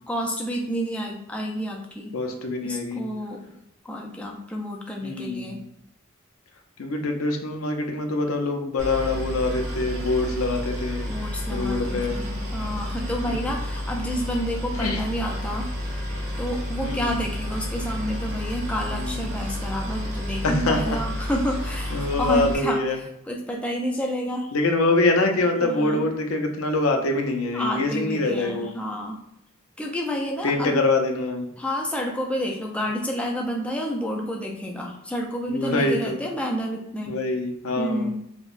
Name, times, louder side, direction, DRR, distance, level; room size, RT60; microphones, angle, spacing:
voice 1, 0.1-2.2 2.6-3.4 3.8-5.6 11.1-15.7 16.4-24.5 25.6-26.0 27.5-29.2 29.8-30.8 31.6-37.2 37.8-38.2, equal, 5° left, 0 dB, 0.3 m, -29 dB
voice 2, 2.1-3.1 5.0-5.5 6.8-11.1 11.5-12.2 13.3-13.4 14.8-15.0 16.8-17.2 18.9-19.3 20.4-21.0 21.9-23.0 24.5-28.7 30.4-31.5 35.5-36.2 37.1-38.1, left 2 dB, 90° left, 3 dB, 0.5 m, -24 dB
Boat Water vehicle, 8.8-22.5, left 1 dB, 85° right, 1.1 m, -31 dB
4.4 x 2.1 x 2.4 m, 0.77 s
head